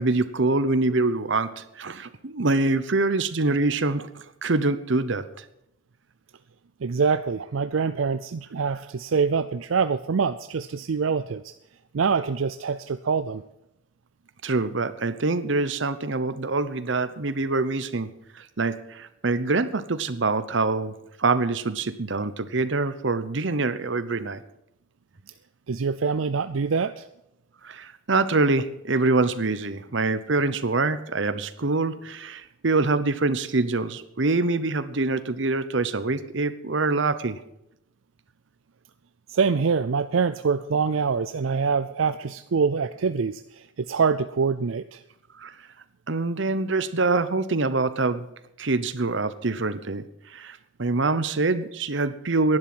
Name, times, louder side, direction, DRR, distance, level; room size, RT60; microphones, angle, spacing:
voice 1, 0.0-5.3 14.4-18.1 18.3-20.9 21.2-24.4 27.6-37.4 45.4-45.5 46.1-48.3 48.6-50.0 50.3-52.6, right 3 dB, 65° right, 13 dB, 0.9 m, -25 dB
voice 2, 6.8-11.4 11.9-13.4 25.7-27.0 39.3-45.0, right 5 dB, 80° right, 12 dB, 0.5 m, -25 dB
11.0 x 11.0 x 7.8 m, 0.83 s
head